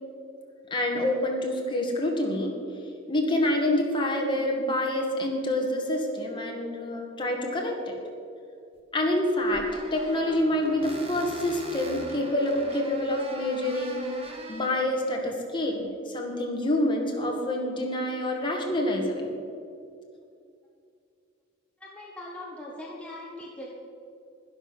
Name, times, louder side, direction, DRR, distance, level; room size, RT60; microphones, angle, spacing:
voice 1, 0.7-2.5 3.1-7.9 8.9-19.3, left 1 dB, 25° left, 0 dB, 2.0 m, -27 dB
sound 1, 8.7-8.8 9.3-14.7, right 1 dB, 30° right, 1.8 m, -41 dB
voice 2, 21.8-23.7, left 1 dB, 5° left, -4 dB, 1.4 m, -40 dB
12.0 x 11.0 x 6.2 m, 2.5 s
head